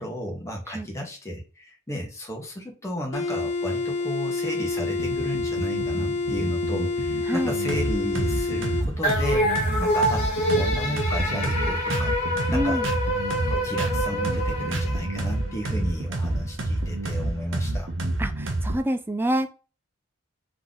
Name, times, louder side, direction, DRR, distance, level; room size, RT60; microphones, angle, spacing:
voice 1, 0.0-12.1 12.5-12.8 13.5-17.9, equal, 15° left, 0 dB, 1.2 m, -33 dB
sound 1, 3.1-8.9, left 3 dB, 75° left, 1.0 m, -28 dB
sound 2, 4.8-18.8, right 1 dB, 65° right, 0.8 m, -29 dB
voice 2, 7.3-7.6 12.5-12.9 18.2-19.5, equal, 10° right, 8 dB, 0.4 m, -27 dB
sound 3, 9.0-15.6, equal, 35° left, 1.5 m, -26 dB
3.7 x 3.2 x 3.8 m, 0.34 s
head